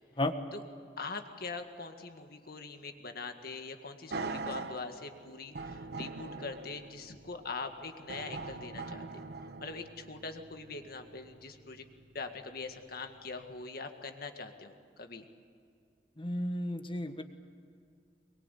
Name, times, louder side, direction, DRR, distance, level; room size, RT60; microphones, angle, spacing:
voice 1, 1.0-9.2 9.6-11.8 12.1-15.2, left 4 dB, 60° left, 6 dB, 2.0 m, -43 dB
sound 1, 4.1-12.2 12.7-12.8, right 3 dB, 60° right, 1.1 m, -43 dB
voice 2, 16.2-17.2, left 1 dB, 30° left, 7 dB, 1.6 m, -33 dB
23.5 x 23.0 x 8.4 m, 2.3 s
head